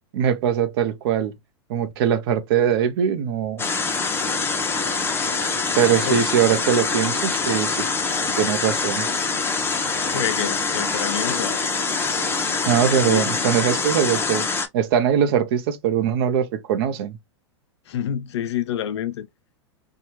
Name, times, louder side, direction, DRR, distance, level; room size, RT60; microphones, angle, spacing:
voice 1, 0.1-1.3 1.7-3.7 5.8-7.9 8.4-9.1 12.7-14.4 14.7-17.2, right 9 dB, 60° right, 0.6 m, -21 dB
sound 1, 3.6-14.7, left 4 dB, 15° left, 0.6 m, -24 dB
voice 2, 10.0-11.6 12.1-12.2 13.0-13.3 17.9-19.3, left 9 dB, 75° left, 0.4 m, -28 dB
2.9 x 2.3 x 2.9 m
hypercardioid pair, 105°, 14 cm